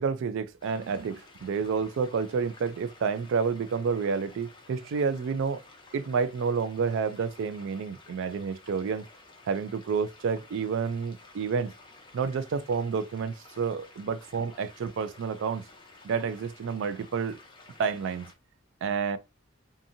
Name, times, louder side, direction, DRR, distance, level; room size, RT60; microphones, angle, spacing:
voice 1, 0.0-5.6 5.9-9.0 9.5-11.7 12.1-15.6 16.0-17.4 17.8-18.2 18.8-19.2, right 5 dB, 65° right, 0.3 m, -29 dB
sound 1, 0.6-18.3, left 2 dB, 25° left, 0.6 m, -53 dB
2.6 x 2.6 x 2.6 m
head